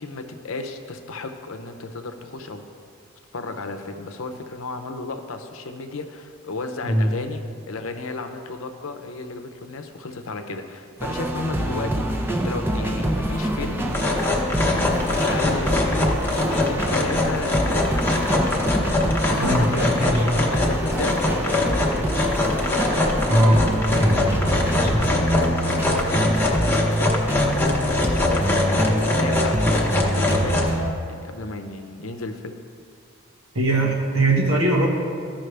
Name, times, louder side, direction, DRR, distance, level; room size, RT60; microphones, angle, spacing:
voice 1, 0.0-2.6 3.3-7.4 7.7-13.9 14.4-16.1 16.4-18.2 19.3-22.1 25.1-30.6 31.1-32.5, left 3 dB, 75° left, 6 dB, 0.7 m, -34 dB
sound 1, 11.0-30.9, right 1 dB, 10° right, 0.5 m, -25 dB
sound 2, 13.8-30.8, left 2 dB, 10° left, 0.8 m, -23 dB
voice 2, 19.3-19.7 20.0-20.4 23.3-23.6 23.9-24.2 24.8-25.0 33.5-34.9, right 1 dB, 85° right, 0 dB, 1.4 m, -20 dB
14.0 x 5.8 x 3.3 m, 2.4 s
head